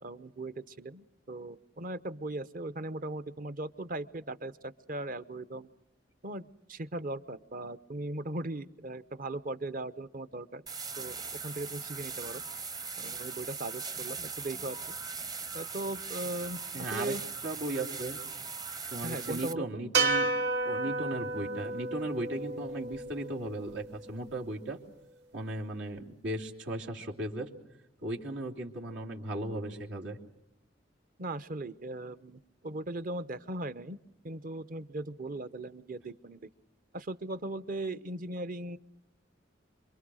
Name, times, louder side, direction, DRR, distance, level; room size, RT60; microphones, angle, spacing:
voice 1, 0.0-5.7 6.2-10.6 11.0-11.2 11.4-12.4 13.0-14.8 15.5-17.2 19.0-19.8 31.2-34.0 34.2-36.4 36.9-38.8, right 2 dB, 50° right, 14 dB, 0.9 m, -38 dB
sound 1, 10.7-19.5, right 5 dB, 20° right, 0.8 m, -40 dB
voice 2, 16.7-17.2 17.4-18.2 18.9-20.3 20.6-24.8 25.3-27.5 28.0-30.2, right 1 dB, 90° right, -1 dB, 3.2 m, -36 dB
sound 2, 19.9-24.3, right 3 dB, 65° right, 2.2 m, -32 dB
27.0 x 23.5 x 6.3 m, 0.88 s
head